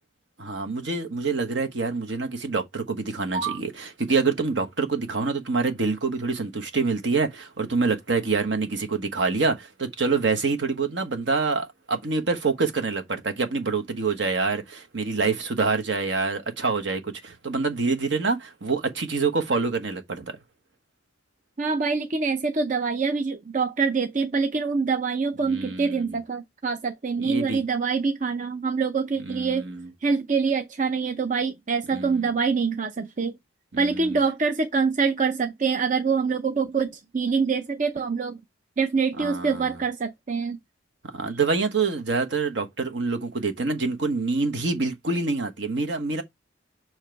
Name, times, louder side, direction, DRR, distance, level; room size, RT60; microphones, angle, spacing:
voice 1, 0.4-20.3 25.4-26.2 27.2-27.6 29.2-29.9 31.9-32.4 33.7-34.2 39.2-39.7 41.1-46.2, right 4 dB, 70° right, 1.2 m, -26 dB
voice 2, 21.6-29.7 30.0-33.4 33.8-38.4 38.8-40.6, right 5 dB, 45° right, 0.6 m, -25 dB
7.2 x 3.0 x 4.5 m
head